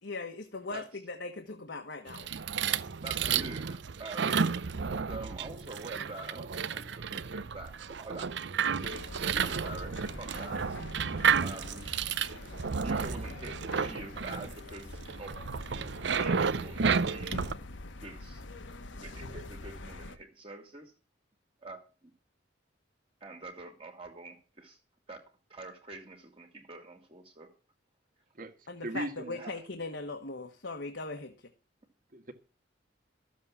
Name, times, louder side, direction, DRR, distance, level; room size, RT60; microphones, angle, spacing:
voice 1, 0.0-2.3 28.7-31.5, left 3 dB, 65° left, 5 dB, 1.3 m, -39 dB
sound 1, 2.1-17.5, right 6 dB, 65° right, 0.6 m, -32 dB
voice 2, 3.0-4.4 4.9-8.3 8.8-10.8 11.4-11.9 12.4-15.5 16.0-17.5 18.0-18.4 18.9-20.9 21.6-22.1 23.2-24.8 25.1-25.2 25.5-27.5 29.2-29.6, right 2 dB, 30° right, 4 dB, 2.1 m, -46 dB
sound 2, 8.8-20.2, left 2 dB, 85° left, 1.3 m, -45 dB
voice 3, 28.3-29.6 32.1-32.3, right 2 dB, 45° right, 7 dB, 1.7 m, -39 dB
13.5 x 7.5 x 7.1 m, 0.35 s
head